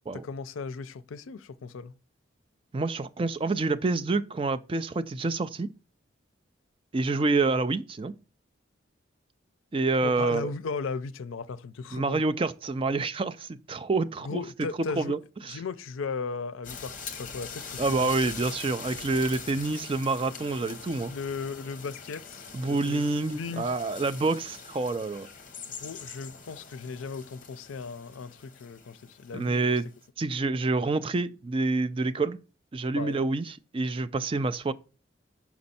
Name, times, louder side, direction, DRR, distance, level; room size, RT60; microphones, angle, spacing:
voice 1, 0.1-1.9 10.0-12.2 14.2-15.2 15.4-18.3 21.0-23.0 23.3-23.7 25.8-29.8 33.0-33.2, left 4 dB, 85° left, 0.5 m, -36 dB
voice 2, 2.7-5.7 6.9-8.1 9.7-10.5 11.9-14.4 15.0-15.2 15.4-15.6 17.8-21.1 22.5-25.3 29.3-29.8 30.2-32.4 32.7-34.7, right 3 dB, 25° right, 0.3 m, -27 dB
sound 1, 16.6-30.1, left 5 dB, 40° left, 0.9 m, -43 dB
6.0 x 5.2 x 4.1 m
head